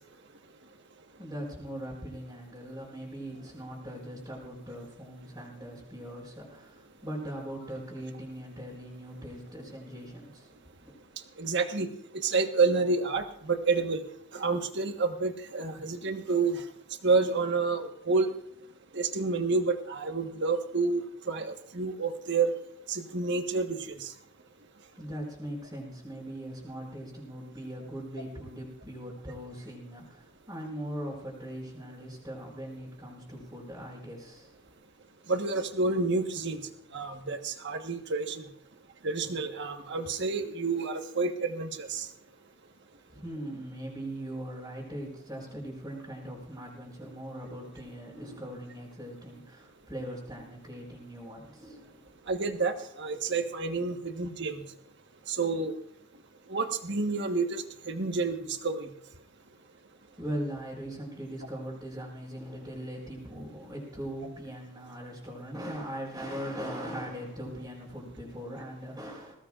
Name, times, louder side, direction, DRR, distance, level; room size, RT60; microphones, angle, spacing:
voice 1, 1.2-10.9 24.9-34.6 43.1-52.2 60.2-69.3, equal, 15° right, -8 dB, 4.8 m, -40 dB
voice 2, 11.4-14.0 14.3-16.6 17.0-18.3 18.9-22.5 22.9-24.1 35.3-36.6 36.9-38.4 39.0-42.1 52.3-54.6 55.3-55.7 56.5-58.9, right 4 dB, 50° right, 6 dB, 1.4 m, -29 dB
21.5 x 18.0 x 2.5 m, 0.71 s
head